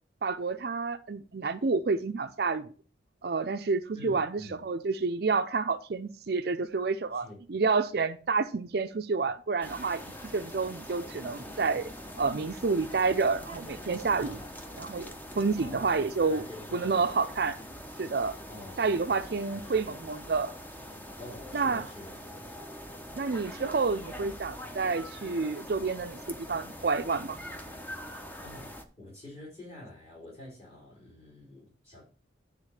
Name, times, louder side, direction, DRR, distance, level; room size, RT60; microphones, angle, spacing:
voice 1, 0.2-2.7 3.2-10.0 10.3-11.9 12.2-14.4 14.8-16.4 16.7-17.6 18.0-18.4 18.8-20.5 21.5-21.8 23.2-27.4, right 4 dB, 55° right, 8 dB, 0.5 m, -29 dB
voice 2, 3.9-4.6 7.1-7.4 14.2-14.5 15.6-17.4 18.5-20.1 21.2-22.1 22.4-22.6 28.2-28.7 29.0-32.0, left 1 dB, 30° left, -5 dB, 3.9 m, -47 dB
sound 1, 9.6-28.8, equal, 10° left, 0.7 m, -44 dB
9.8 x 3.7 x 6.4 m, 0.39 s
head